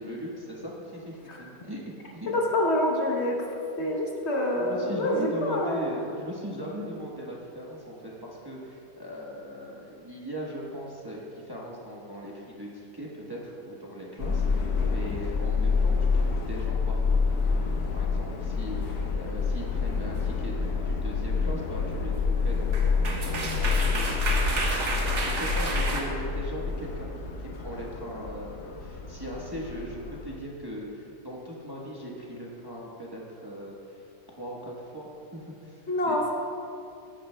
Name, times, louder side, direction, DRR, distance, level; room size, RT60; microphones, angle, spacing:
voice 1, 0.0-2.3 4.6-27.1 27.5-34.1 34.4-36.3, equal, 15° right, -4 dB, 1.1 m, -39 dB
voice 2, 2.3-3.4 3.8-5.8 35.9-36.3, left 1 dB, 50° left, -1 dB, 1.1 m, -26 dB
Subway metro underground, 14.2-30.3, left 4 dB, 85° left, 1.4 m, -28 dB
sound 1, 20.7-20.9 22.5-22.6 22.7-26.0, right 2 dB, 55° right, 1.4 m, -30 dB
15.5 x 10.0 x 2.2 m, 2.6 s
omnidirectional pair, 1.5 m